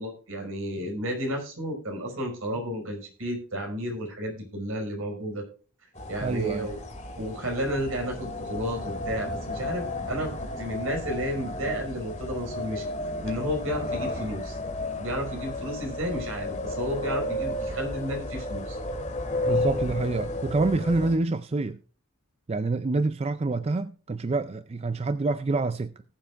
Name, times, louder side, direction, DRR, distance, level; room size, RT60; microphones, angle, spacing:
voice 1, 0.0-5.4 6.1-6.8 7.2-10.3 10.6-12.9 13.2-14.6 15.0-18.8, equal, 70° right, 5.3 m, -32 dB
sound 1, 5.9-21.2, left 2 dB, 30° left, 2.4 m, -33 dB
voice 2, 6.2-6.7 19.5-21.8 22.5-25.9, right 3 dB, 30° right, 0.4 m, -27 dB
19.0 x 7.5 x 2.5 m
head